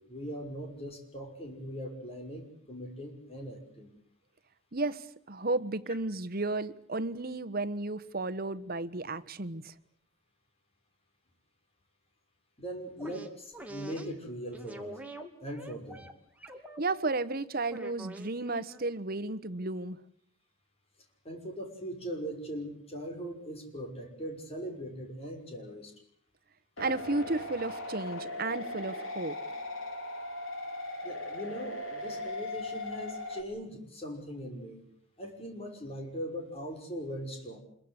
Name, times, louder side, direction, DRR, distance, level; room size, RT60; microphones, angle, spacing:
voice 1, 0.0-3.9 12.6-15.0 15.4-16.1 21.2-25.9 31.0-34.8 35.2-37.6, equal, 30° left, 6.2 m, -40 dB
voice 2, 4.7-9.7 16.8-20.0 26.8-29.4, right 2 dB, 50° right, 1.3 m, -33 dB
sound 1, 13.0-14.1 14.5-16.1 16.4-17.2 17.7-18.8, right 1 dB, 10° right, 2.5 m, -45 dB
sound 2, 26.8-33.4, left 1 dB, 90° left, 4.8 m, -38 dB
27.0 x 22.5 x 8.2 m
head